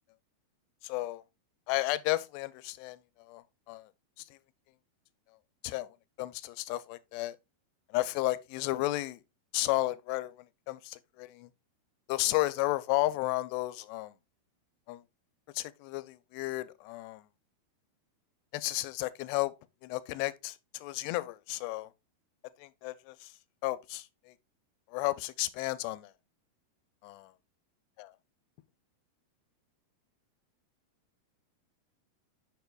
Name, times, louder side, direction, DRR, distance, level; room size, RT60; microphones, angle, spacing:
voice 1, 0.8-1.2 1.7-3.9 4.3-4.4 5.6-7.4 7.9-9.2 9.5-10.3 10.7-11.5 12.1-14.1 14.9-15.0 15.5-17.2 18.5-19.5 19.8-21.9 22.6-23.3 23.6-24.3 24.9-26.1 27.0-27.2 28.0-28.1, left 18 dB, 90° left, 2.7 m, -33 dB
8.2 x 6.7 x 2.3 m
omnidirectional pair, 4.7 m